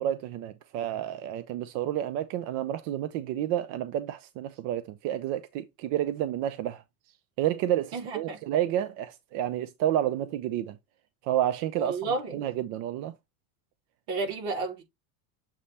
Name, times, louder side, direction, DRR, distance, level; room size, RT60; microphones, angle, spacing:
voice 1, 0.0-6.8 7.4-10.8 11.2-13.1, right 12 dB, 45° right, 0.5 m, -30 dB
voice 2, 7.9-8.4 11.8-12.4 14.1-14.8, right 3 dB, 60° right, 3.3 m, -31 dB
7.3 x 3.3 x 4.1 m
cardioid pair, 160°, 45 cm